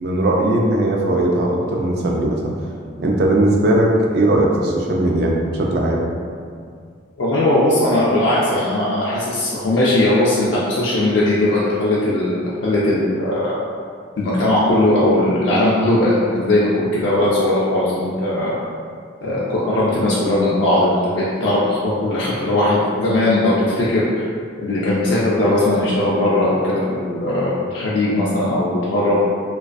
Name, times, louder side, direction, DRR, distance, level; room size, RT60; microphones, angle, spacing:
voice 1, 0.0-2.5 3.0-6.1, right 1 dB, 55° right, -1 dB, 0.3 m, -18 dB
voice 2, 7.2-13.6 14.2-18.6 19.2-24.3 24.6-29.2, left 1 dB, 65° left, -7 dB, 0.3 m, -18 dB
2.3 x 2.3 x 2.4 m, 2.1 s
head